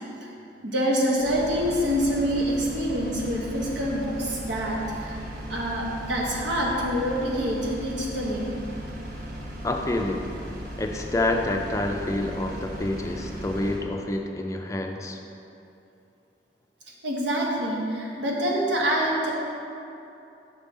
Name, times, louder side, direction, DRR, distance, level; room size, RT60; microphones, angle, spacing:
voice 1, 0.6-5.2 5.5-8.5 17.0-19.3, equal, 90° right, -3 dB, 1.2 m, -26 dB
Engine, 1.2-13.8, equal, 50° right, 0.8 m, -37 dB
voice 2, 9.6-10.3 10.8-15.2, left 2 dB, 15° left, 3 dB, 0.4 m, -28 dB
6.1 x 5.3 x 4.2 m, 2.8 s
head